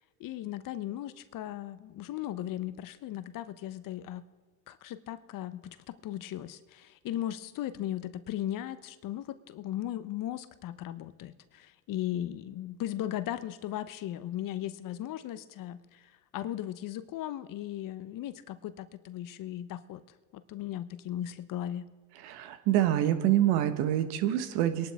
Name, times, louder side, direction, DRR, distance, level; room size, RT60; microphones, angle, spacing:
voice 1, 0.0-4.2 4.7-20.0 20.3-21.9, left 12 dB, 55° left, 14 dB, 0.8 m, -37 dB
voice 2, 22.2-24.9, right 12 dB, 70° right, 10 dB, 1.3 m, -26 dB
23.0 x 11.5 x 3.5 m, 1.4 s
supercardioid pair, 85°, 41 cm